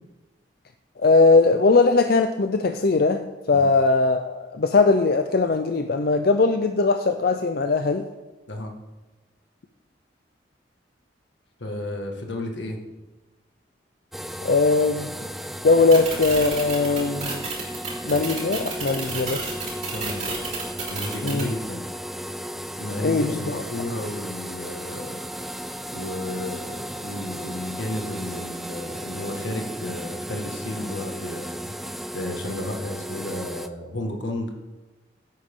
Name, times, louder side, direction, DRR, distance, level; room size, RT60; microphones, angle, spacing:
voice 1, 1.0-8.1 14.4-15.1 15.6-17.5 18.0-19.5 21.2-21.5 23.0-23.4, left 3 dB, 55° left, 6 dB, 0.5 m, -20 dB
voice 2, 11.6-12.8 19.9-20.3 20.9-21.9 22.8-25.2 25.9-31.7 32.1-34.5, left 1 dB, 80° left, 2 dB, 1.9 m, -32 dB
sound 1, 14.1-33.7, equal, ahead, 0.4 m, -35 dB
sound 2, 15.9-21.4, right 5 dB, 35° right, 4.4 m, -31 dB
16.5 x 8.9 x 3.8 m, 1.2 s
head